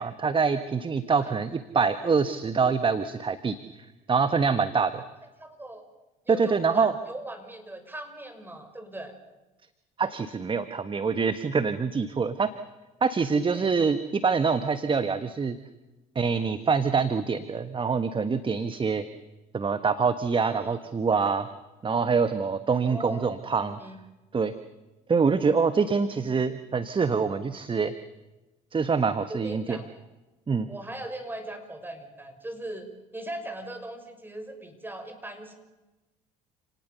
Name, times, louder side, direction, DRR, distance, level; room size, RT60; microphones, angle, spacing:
voice 1, 0.0-3.6 4.1-5.0 6.3-6.9 10.0-12.5 13.0-15.6 16.1-19.0 19.5-21.5 21.8-23.8 24.3-24.5 25.1-27.9 28.7-29.8 30.5-30.7, right 5 dB, 30° right, 12 dB, 1.4 m, -25 dB
voice 2, 5.4-5.8 6.2-9.1 13.3-13.9 20.4-20.8 22.8-23.3 23.8-24.0 29.3-29.9 30.7-32.9 33.1-35.5, right 1 dB, 10° right, 6 dB, 6.0 m, -39 dB
29.5 x 19.0 x 7.0 m, 1.1 s
hypercardioid pair, 65°, 18 cm